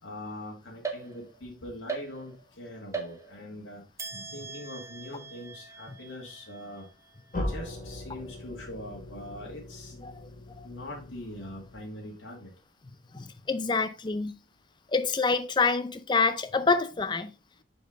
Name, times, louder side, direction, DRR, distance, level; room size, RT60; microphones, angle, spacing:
voice 1, 0.0-3.8 4.3-6.9 7.5-9.9 10.6-12.5, left 1 dB, 85° left, 1.8 m, -42 dB
sound 1, 0.8-1.5 1.9-2.5 2.9-3.6 4.0-7.4, right 5 dB, 15° right, 0.8 m, -41 dB
sound 2, 7.3-12.1, left 1 dB, 45° left, 1.7 m, -39 dB
voice 2, 10.0-10.3 10.6-10.7 13.1-14.4 14.9-17.3, left 4 dB, 25° left, 0.5 m, -27 dB
5.8 x 5.3 x 3.7 m
head